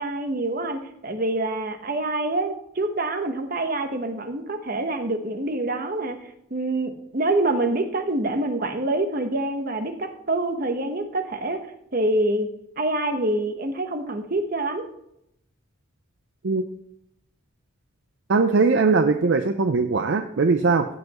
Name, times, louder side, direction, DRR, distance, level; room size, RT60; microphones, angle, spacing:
voice 1, 0.0-6.2 6.5-11.6 11.9-12.5 12.8-14.8, right 2 dB, 45° right, 6 dB, 1.0 m, -26 dB
voice 2, 18.3-20.9, right 4 dB, 60° right, 7 dB, 0.5 m, -20 dB
15.0 x 5.5 x 3.0 m, 0.76 s
head